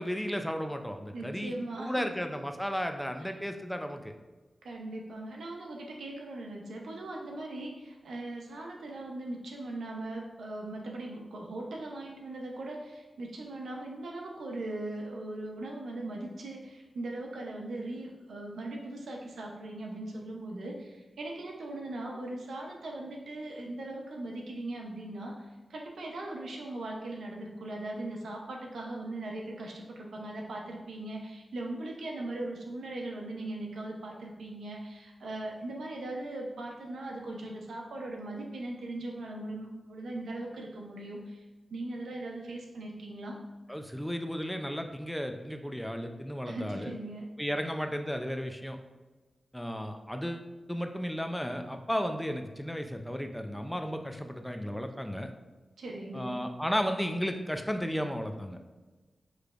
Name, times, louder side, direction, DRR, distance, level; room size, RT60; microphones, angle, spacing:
voice 1, 0.0-1.5 1.8-4.1 43.7-46.9 47.4-48.8 49.5-55.3 56.1-58.6, equal, 5° left, 6 dB, 0.5 m, -34 dB
voice 2, 1.1-2.1 3.2-3.3 4.6-41.4 41.7-43.4 46.5-47.3 47.6-47.7 55.8-56.5, right 2 dB, 90° right, 0 dB, 0.7 m, -39 dB
6.6 x 3.2 x 2.5 m, 1.2 s
cardioid pair, 50°, 0 cm